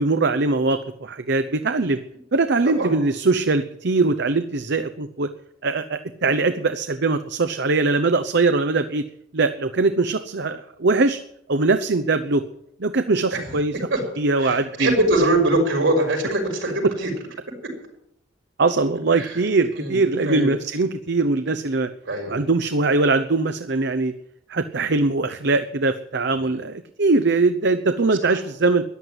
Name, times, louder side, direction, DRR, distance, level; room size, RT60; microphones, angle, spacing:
voice 1, 0.0-2.0 2.3-5.3 5.6-9.0 9.3-11.2 11.5-12.4 12.8-13.7 14.2-14.9 18.6-21.9 22.3-24.1 24.5-28.8, right 3 dB, 65° right, 10 dB, 0.8 m, -21 dB
voice 2, 14.4-17.1 19.1-19.4 19.7-20.5 21.4-21.5 22.0-22.4 26.3-26.6 28.2-28.4, right 2 dB, 80° right, 1 dB, 6.1 m, -23 dB
14.0 x 11.0 x 9.3 m, 0.76 s
head